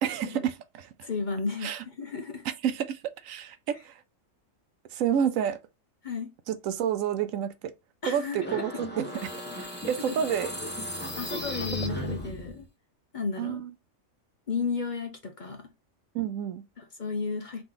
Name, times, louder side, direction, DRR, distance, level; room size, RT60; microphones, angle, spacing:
voice 1, 0.0-1.1 1.6-1.8 2.6-4.0 4.9-5.6 6.5-7.7 8.1-10.5 13.4-13.7 16.1-16.6, right 9 dB, 75° right, 1.0 m, -30 dB
voice 2, 1.0-2.4 6.0-6.3 8.0-8.6 10.1-10.2 11.2-12.7 13.1-13.6 14.5-15.7 16.8-17.6, left 4 dB, 40° left, 0.9 m, -33 dB
sound 1, 8.4-12.6, equal, 10° left, 1.0 m, -36 dB
3.9 x 3.0 x 3.6 m
omnidirectional pair, 1.4 m